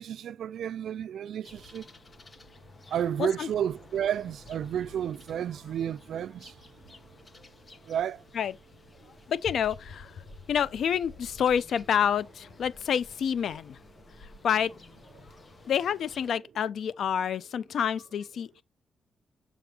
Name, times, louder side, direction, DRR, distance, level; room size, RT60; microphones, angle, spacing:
voice 1, 0.0-1.8 2.9-6.5 7.9-8.2, right 9 dB, 80° right, 0.3 m, -31 dB
sound 1, 1.4-16.3, left 3 dB, 35° left, 1.0 m, -52 dB
voice 2, 9.3-10.2 10.5-13.8 14.2-14.7 15.7-18.6, left 8 dB, 75° left, 0.5 m, -28 dB
7.0 x 5.0 x 2.9 m
cardioid pair, 95°, 0 cm